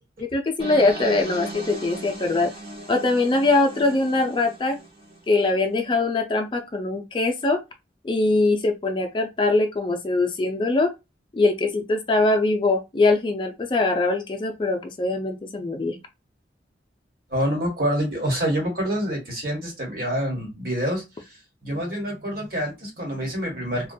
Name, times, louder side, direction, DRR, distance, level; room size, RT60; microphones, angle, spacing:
voice 1, 0.2-2.5 2.9-4.8 5.3-7.6 8.0-10.9 11.3-16.0, left 2 dB, 25° left, 0.3 m, -22 dB
sound 1, 0.6-5.5, right 1 dB, 30° right, 0.6 m, -37 dB
voice 2, 17.3-23.9, equal, 55° right, 1.1 m, -27 dB
2.2 x 2.1 x 2.6 m
head